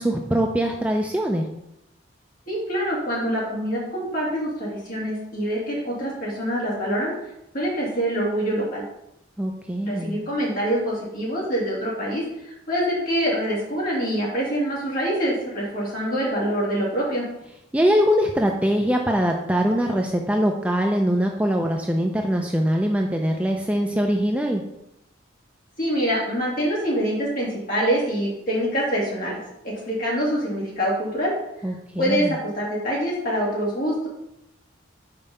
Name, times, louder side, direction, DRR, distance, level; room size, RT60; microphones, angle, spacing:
voice 1, 0.0-1.4 9.4-10.2 17.7-24.6 31.6-32.3, equal, 5° right, 2 dB, 0.4 m, -22 dB
voice 2, 2.5-7.1 7.5-8.8 9.8-17.2 25.8-29.4 29.6-31.3 32.0-34.1, equal, 45° left, -5 dB, 2.7 m, -25 dB
5.3 x 4.7 x 5.5 m, 0.85 s
head